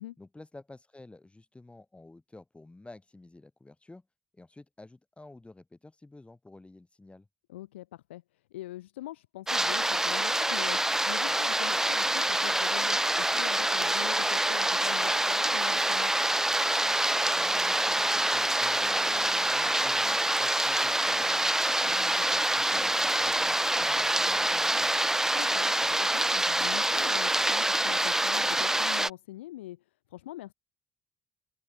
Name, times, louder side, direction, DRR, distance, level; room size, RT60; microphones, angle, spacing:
voice 1, 0.2-4.0 4.3-7.3 17.3-21.5 21.9-24.9, left 2 dB, 20° left, 5.0 m, -51 dB
voice 2, 7.5-16.2 21.8-22.3 25.3-30.5, left 15 dB, 85° left, 3.1 m, -43 dB
sound 1, 9.5-29.1, right 1 dB, 10° right, 0.3 m, -26 dB
Wind instrument woodwind instrument, 13.6-21.0, right 8 dB, 55° right, 5.9 m, -43 dB
open air
hypercardioid pair, 50°, 6 cm